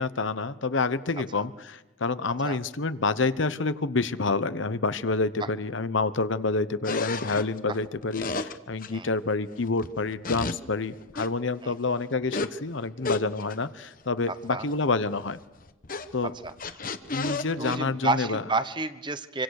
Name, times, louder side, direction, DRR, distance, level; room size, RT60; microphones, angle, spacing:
voice 1, 0.0-15.4 16.1-16.3 17.1-18.4, left 3 dB, 70° left, 14 dB, 1.0 m, -28 dB
sound 1, 6.8-8.9 9.7-10.6 10.9-11.3 12.2-12.5 13.0-13.6 14.2-14.3 14.5-15.0 15.2-17.8, left 3 dB, 45° left, 1.0 m, -32 dB
voice 2, 14.3-14.7 16.4-16.5 17.6-19.4, right 3 dB, 25° right, 12 dB, 1.0 m, -30 dB
26.5 x 25.0 x 6.6 m, 1.0 s
head